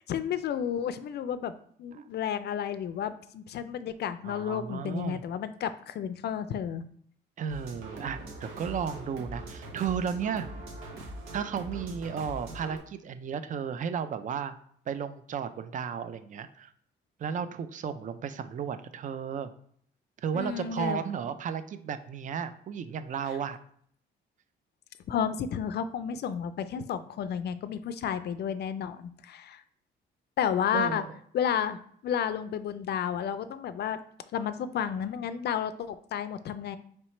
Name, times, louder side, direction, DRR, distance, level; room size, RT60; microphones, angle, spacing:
voice 1, 0.1-1.5 1.8-6.8 20.3-21.0 25.1-29.6 30.4-31.0 31.3-34.0 34.3-36.8, left 8 dB, 55° left, 12 dB, 0.4 m, -32 dB
voice 2, 4.2-5.2 7.4-10.5 11.3-14.6 14.9-16.7 17.2-19.5 20.2-23.6 30.7-31.1, right 7 dB, 40° right, 11 dB, 0.4 m, -34 dB
sound 1, 7.5-12.8, right 1 dB, 85° right, 0.9 m, -42 dB
3.2 x 2.9 x 4.3 m, 0.62 s
cardioid pair, 90°, 20 cm